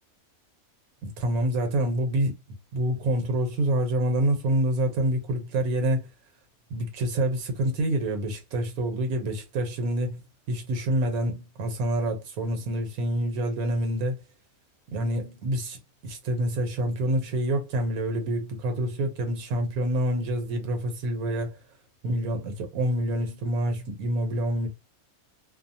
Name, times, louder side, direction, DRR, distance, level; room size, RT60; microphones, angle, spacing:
voice 1, 1.0-2.3 2.7-6.1 6.7-10.2 10.5-14.2 14.9-21.6 22.0-24.7, right 1 dB, 80° right, 1.2 m, -27 dB
2.7 x 2.0 x 2.6 m
omnidirectional pair, 1.5 m